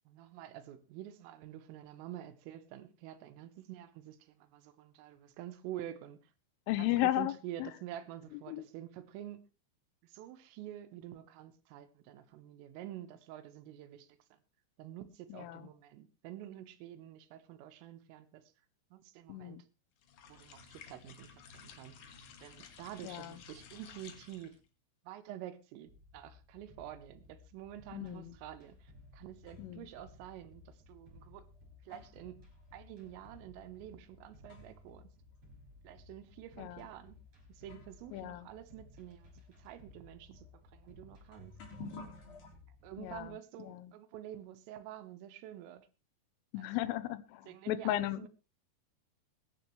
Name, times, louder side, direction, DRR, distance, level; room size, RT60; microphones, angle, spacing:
voice 1, 0.1-6.2 6.8-9.4 10.0-14.4 14.8-18.4 18.9-19.6 20.3-22.0 22.4-24.6 25.1-31.5 31.9-32.4 32.7-35.1 35.8-37.2 37.5-39.3 39.6-41.6 42.8-45.9 46.6-47.0 47.5-48.3, right 12 dB, 80° right, 10 dB, 3.8 m, -48 dB
voice 2, 6.7-7.3 7.6-7.7 8.5-8.6 15.3-15.7 19.3-19.6 23.0-23.3 27.9-28.3 29.6-29.9 36.6-36.8 38.1-38.5 43.0-43.3 43.6-43.9 46.5-48.3, left 15 dB, 80° left, 14 dB, 3.5 m, -35 dB
sound 1, 20.0-24.6, left 6 dB, 60° left, 2.4 m, -54 dB
sound 2, 25.8-43.3, left 2 dB, 30° right, 6.9 m, -58 dB
sound 3, 28.8-29.9 30.8-30.9 31.5-35.0 35.3-35.4 36.2-36.3 37.2-37.3 37.6-42.5, left 3 dB, 40° left, 4.7 m, -54 dB
22.0 x 11.0 x 3.1 m, 0.30 s
omnidirectional pair, 5.8 m